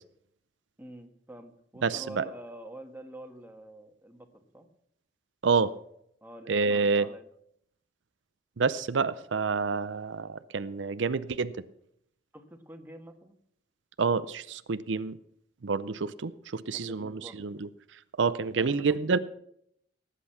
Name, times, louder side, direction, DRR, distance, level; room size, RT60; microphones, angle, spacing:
voice 1, 0.8-4.7 6.2-7.2 12.3-13.4 16.7-17.4 18.6-19.2, right 1 dB, 10° right, 5 dB, 1.5 m, -46 dB
voice 2, 1.8-2.2 5.4-5.7 6.5-7.1 8.6-11.5 14.0-15.2 15.6-17.7 18.2-19.2, right 5 dB, 85° right, 14 dB, 0.6 m, -28 dB
18.0 x 8.5 x 5.8 m, 0.71 s
head